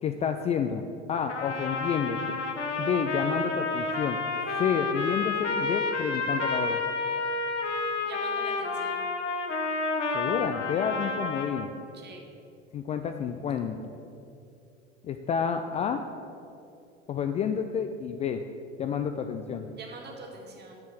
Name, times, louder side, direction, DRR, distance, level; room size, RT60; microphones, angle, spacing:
voice 1, 0.0-0.8 1.1-2.4 2.8-4.2 4.6-6.8 10.1-11.7 12.7-13.8 15.0-16.0 17.1-18.4 18.8-19.7, left 7 dB, 20° left, 6 dB, 0.3 m, -29 dB
Trumpet, 1.3-11.7, left 3 dB, 80° left, 1.1 m, -30 dB
voice 2, 8.0-9.0 11.9-12.2 19.7-20.8, right 3 dB, 30° right, 1 dB, 2.0 m, -44 dB
7.4 x 7.1 x 7.7 m, 2.6 s
figure-of-eight pair, 75°, 35 cm